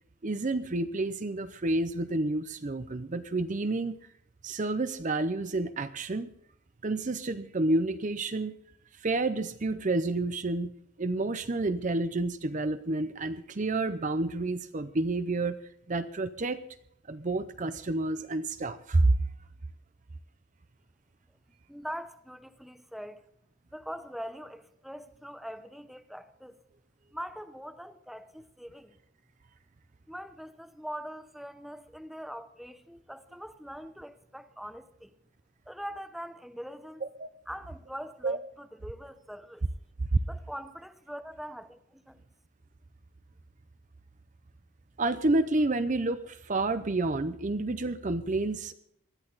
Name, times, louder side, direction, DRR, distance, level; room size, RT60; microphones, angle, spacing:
voice 1, 0.2-4.0 4.4-6.3 6.8-8.5 9.0-10.7 11.0-15.6 15.9-16.6 17.1-19.1 37.0-37.3 38.2-38.4 40.1-40.2 45.0-48.7, right 2 dB, 35° right, 0.6 m, -29 dB
voice 2, 21.7-23.2 23.7-26.6 27.1-29.0 30.1-35.1 35.7-37.0 37.5-39.6 40.3-42.2, equal, ahead, 0.8 m, -42 dB
19.5 x 13.0 x 4.0 m
head